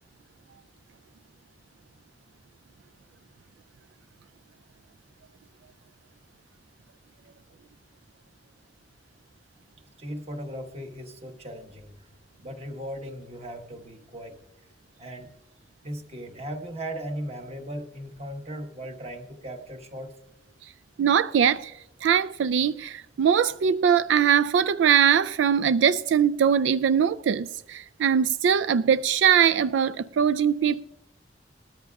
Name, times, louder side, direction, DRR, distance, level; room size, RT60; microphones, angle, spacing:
voice 1, 10.0-12.1 12.4-14.4 15.0-15.3 15.8-20.1, equal, 35° right, 1.3 m, -37 dB
voice 2, 21.0-21.7 22.0-30.8, right 8 dB, 85° right, 0.3 m, -22 dB
20.0 x 13.5 x 2.3 m
head